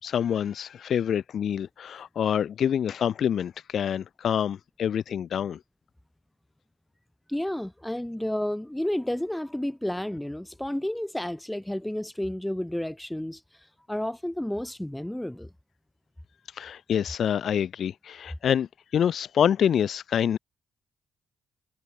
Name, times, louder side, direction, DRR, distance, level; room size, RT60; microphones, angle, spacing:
voice 1, 0.0-5.6 16.5-20.4, left 9 dB, 60° left, 1.5 m, -26 dB
voice 2, 7.3-13.4 13.9-15.5, left 1 dB, 5° left, 7.2 m, -31 dB
cardioid pair, 90°, 0 cm